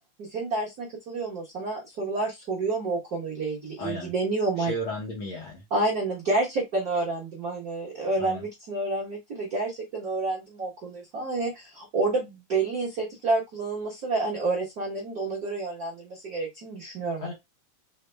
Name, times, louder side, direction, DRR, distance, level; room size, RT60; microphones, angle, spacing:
voice 1, 0.2-4.7 5.7-17.3, right 3 dB, 55° right, -5 dB, 1.0 m, -29 dB
voice 2, 3.8-4.1 4.6-5.6 8.2-8.4 17.2-17.3, left 1 dB, 75° left, -2 dB, 1.2 m, -34 dB
4.9 x 2.1 x 3.3 m, 0.19 s
omnidirectional pair, 3.6 m